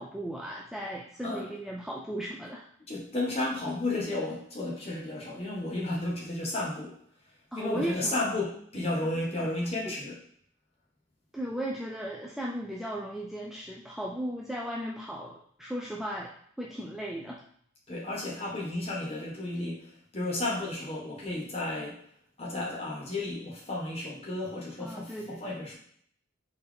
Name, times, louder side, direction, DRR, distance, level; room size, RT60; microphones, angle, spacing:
voice 1, 0.0-2.7 7.5-8.1 9.4-9.5 9.9-10.0 11.3-16.3 16.6-17.4 24.8-25.6, right 1 dB, ahead, -3 dB, 0.3 m, -36 dB
voice 2, 2.9-7.0 7.5-10.2 17.9-22.0 22.4-25.8, left 2 dB, 30° left, -3 dB, 1.2 m, -33 dB
4.3 x 3.5 x 3.4 m, 0.64 s
head